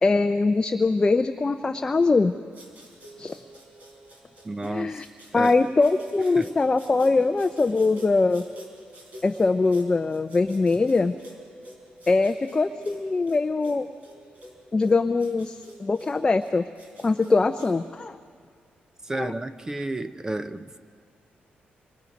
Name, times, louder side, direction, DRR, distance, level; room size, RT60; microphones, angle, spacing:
voice 1, 0.0-2.3 3.2-3.4 4.6-5.0 5.3-8.4 9.2-11.1 12.1-13.9 14.7-16.6 17.0-18.2 19.1-19.3, left 3 dB, 20° left, 7 dB, 0.5 m, -22 dB
sound 1, 2.5-17.7, equal, 45° right, 4.4 m, -47 dB
voice 2, 4.4-5.0 5.3-5.5 6.4-6.5 19.0-20.8, right 2 dB, 20° right, 10 dB, 0.7 m, -32 dB
26.5 x 23.0 x 5.2 m, 2.1 s
cardioid pair, 135°, 3 cm